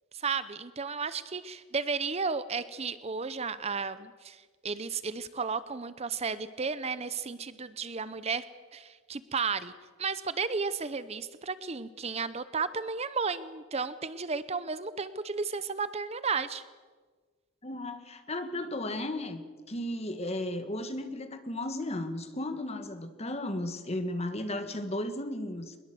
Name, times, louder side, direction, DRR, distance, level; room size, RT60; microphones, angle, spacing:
voice 1, 0.1-8.4 8.7-9.7 10.0-16.6, right 5 dB, 30° right, 14 dB, 0.7 m, -33 dB
voice 2, 17.6-25.8, left 1 dB, 30° left, 9 dB, 1.7 m, -35 dB
22.0 x 21.5 x 7.7 m, 1.5 s
head